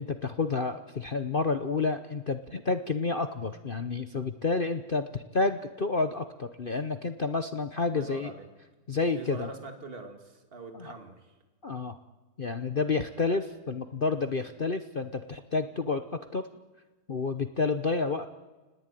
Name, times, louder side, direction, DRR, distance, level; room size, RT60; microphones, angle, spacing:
voice 1, 0.0-8.3 8.9-9.5 10.7-10.9 11.6-12.0 12.4-16.0 16.3-16.4 17.1-18.3, left 4 dB, 65° left, 8 dB, 0.5 m, -30 dB
voice 2, 7.8-8.5 9.1-11.3 13.3-13.4, right 3 dB, 25° right, 5 dB, 2.6 m, -44 dB
30.0 x 19.0 x 9.2 m, 1.2 s
omnidirectional pair, 2.4 m